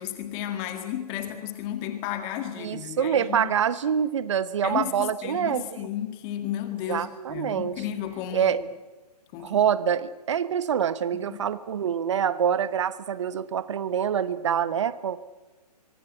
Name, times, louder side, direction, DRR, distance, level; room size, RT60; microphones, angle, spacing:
voice 1, 0.0-3.5 4.6-8.5 9.3-9.6, left 11 dB, 20° left, 7 dB, 1.9 m, -33 dB
voice 2, 2.6-5.9 6.9-7.8 8.3-8.6 9.4-15.3, right 8 dB, 45° right, 15 dB, 1.1 m, -26 dB
25.5 x 23.0 x 7.9 m, 1.1 s
figure-of-eight pair, 130°, 21 cm